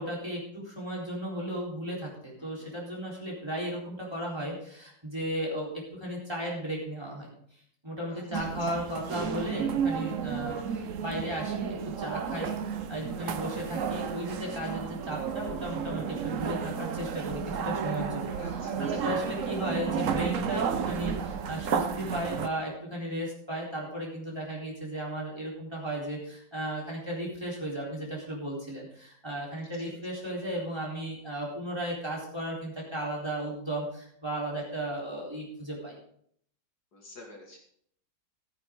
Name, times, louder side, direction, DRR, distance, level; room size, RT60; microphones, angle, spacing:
voice 1, 0.0-7.3 7.8-36.0, equal, 15° right, -3 dB, 4.2 m, -35 dB
voice 2, 2.4-2.7 8.1-8.2 8.6-8.7 18.3-18.8 22.0-22.4 29.9-30.0 36.9-37.6, left 2 dB, 60° left, 0 dB, 2.6 m, -49 dB
sound 1, 8.3-22.5, right 7 dB, 55° right, 1.0 m, -32 dB
14.5 x 9.9 x 3.8 m, 0.64 s
omnidirectional pair, 2.0 m